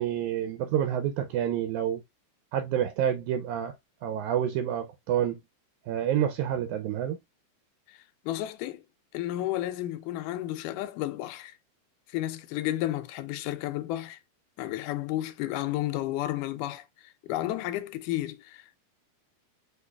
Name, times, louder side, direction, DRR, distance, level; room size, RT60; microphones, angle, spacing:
voice 1, 0.0-2.0 2.5-3.7 4.0-5.4 5.9-7.2, right 10 dB, 80° right, 1.7 m, -28 dB
voice 2, 7.9-8.8 9.1-11.5 12.1-14.2 14.6-18.8, left 14 dB, 80° left, 2.1 m, -32 dB
5.9 x 3.1 x 2.2 m
omnidirectional pair, 3.9 m